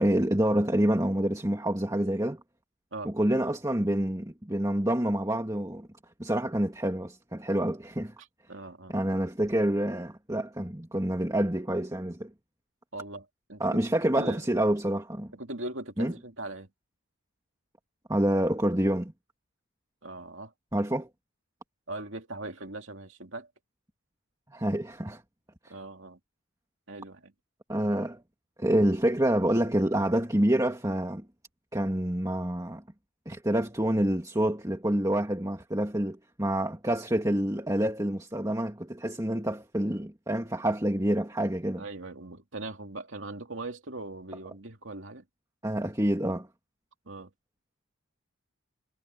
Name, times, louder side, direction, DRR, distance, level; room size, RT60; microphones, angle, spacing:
voice 1, 0.0-2.4 3.0-5.9 6.2-8.1 8.9-12.3 13.6-15.3 16.0-16.1 18.1-19.1 20.7-21.1 24.5-25.2 27.7-28.2 28.6-31.2 31.7-32.8 33.3-41.8 45.6-46.5, right 1 dB, 15° right, 2.3 m, -27 dB
voice 2, 8.5-9.0 12.9-13.6 14.2-14.4 15.3-16.7 20.0-20.5 21.9-23.5 25.7-26.2 26.9-27.3 41.8-45.2 47.1-47.3, right 2 dB, 60° right, 2.9 m, -40 dB
head